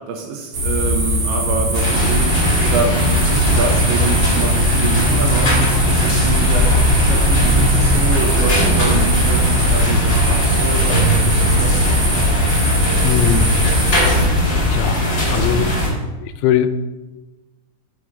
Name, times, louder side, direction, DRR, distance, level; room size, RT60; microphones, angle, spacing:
voice 1, 0.1-12.0 15.5-15.6, right 4 dB, 80° right, 2 dB, 2.8 m, -26 dB
sound 1, 0.5-14.3, right 1 dB, 60° right, 1.7 m, -20 dB
sound 2, 1.7-15.9, left 1 dB, 30° left, 1.6 m, -18 dB
sound 3, 3.4-13.7, left 3 dB, 55° left, 2.9 m, -37 dB
voice 2, 13.0-14.2 14.7-16.7, left 10 dB, 85° left, 9 dB, 3.1 m, -21 dB
7.0 x 4.7 x 6.0 m, 1.1 s
omnidirectional pair, 5.8 m